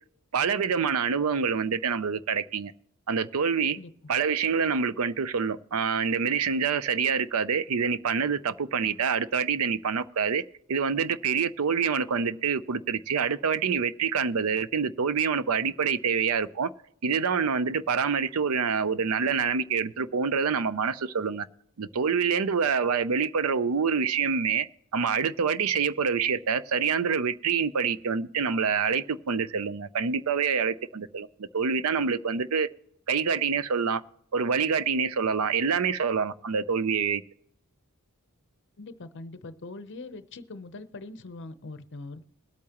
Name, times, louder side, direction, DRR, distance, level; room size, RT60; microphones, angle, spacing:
voice 1, 0.3-2.7 3.1-3.8 4.1-10.4 10.7-16.7 17.0-21.5 21.8-24.7 24.9-32.7 33.1-34.0 34.3-37.2, right 6 dB, 75° right, 0.5 m, -26 dB
voice 2, 38.8-42.2, left 2 dB, 55° left, 0.7 m, -42 dB
21.0 x 8.5 x 2.9 m
head